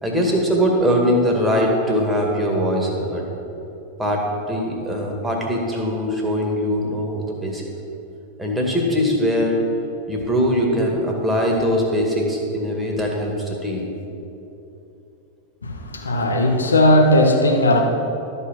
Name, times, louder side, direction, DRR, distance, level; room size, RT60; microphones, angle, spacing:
voice 1, 0.0-3.3 4.0-7.6 8.4-9.6 10.1-13.9, equal, 5° right, -1 dB, 2.0 m, -21 dB
voice 2, 15.6-17.8, left 1 dB, 75° left, 2 dB, 1.2 m, -17 dB
12.5 x 5.5 x 6.1 m, 3.0 s
figure-of-eight pair, 90°, 0 cm